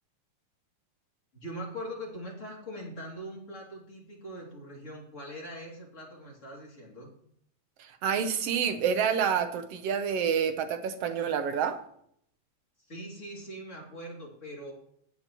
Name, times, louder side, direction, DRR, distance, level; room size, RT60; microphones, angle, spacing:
voice 1, 1.3-7.1 12.8-14.7, equal, 25° left, -2 dB, 2.8 m, -42 dB
voice 2, 7.8-11.8, right 7 dB, 70° right, 8 dB, 1.6 m, -28 dB
15.5 x 9.3 x 3.0 m, 0.68 s
omnidirectional pair, 3.4 m